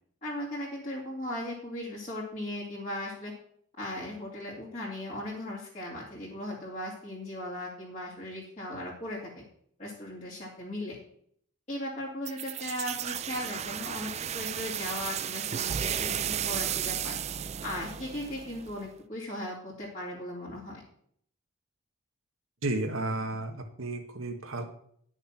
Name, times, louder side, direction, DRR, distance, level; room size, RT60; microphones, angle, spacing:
voice 1, 0.2-3.3 3.8-9.4 9.8-11.0 11.7-17.2 17.6-20.8, left 1 dB, 30° left, -7 dB, 3.0 m, -37 dB
sound 1, 12.2-18.9, right 9 dB, 30° right, 0.3 m, -34 dB
voice 2, 22.6-24.7, right 2 dB, 75° right, 3 dB, 1.6 m, -32 dB
11.0 x 6.6 x 5.9 m, 0.63 s
head